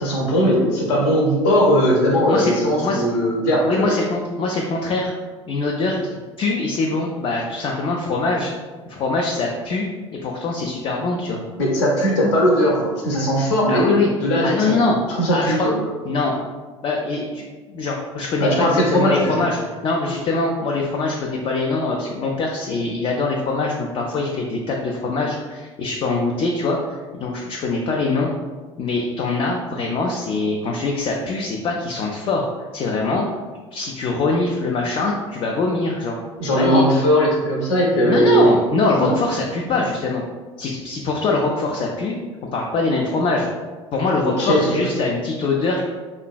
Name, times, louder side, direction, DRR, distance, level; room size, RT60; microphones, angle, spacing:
voice 1, 0.0-3.9 11.6-13.8 14.2-14.6 15.1-15.7 18.4-19.4 36.4-38.5 39.0-39.1 44.4-44.8, equal, 65° left, -2 dB, 0.7 m, -18 dB
voice 2, 3.7-5.1 5.5-6.1 6.4-8.5 8.9-9.9 10.2-11.4 13.7-14.1 14.4-15.0 15.3-15.7 16.1-16.3 16.8-28.3 28.8-33.3 33.7-36.2 36.5-36.8 38.0-40.2 40.6-42.2 42.5-43.5 43.9-45.9, left 3 dB, 35° left, -1 dB, 0.3 m, -23 dB
3.1 x 2.2 x 2.3 m, 1.4 s
figure-of-eight pair, 65°, 16 cm